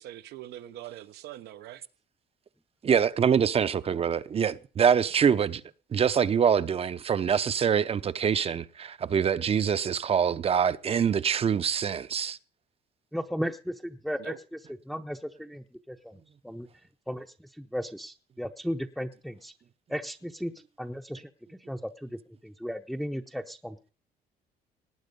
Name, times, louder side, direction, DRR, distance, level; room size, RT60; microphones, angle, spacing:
voice 1, 0.0-1.8 14.2-14.4, right 13 dB, 80° right, 0.9 m, -43 dB
voice 2, 2.8-5.6 5.9-12.4, right 7 dB, 35° right, 0.7 m, -25 dB
voice 3, 13.1-14.3 14.9-16.2 16.4-16.7 17.1-17.3 17.5-19.5 19.9-20.5 20.8-22.1 22.4-23.8, equal, ahead, 0.7 m, -35 dB
18.5 x 9.1 x 5.3 m
cardioid pair, 110°, 17 cm